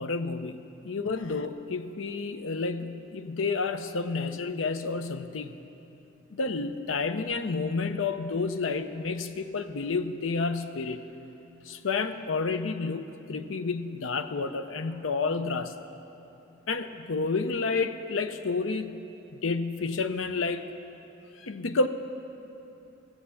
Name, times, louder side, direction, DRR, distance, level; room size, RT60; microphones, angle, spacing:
voice 1, 0.0-5.5 6.3-11.0 11.7-15.7 16.7-19.1 19.4-20.7 21.4-21.9, left 4 dB, 90° left, 10 dB, 0.6 m, -30 dB
15.0 x 7.6 x 7.1 m, 2.9 s
head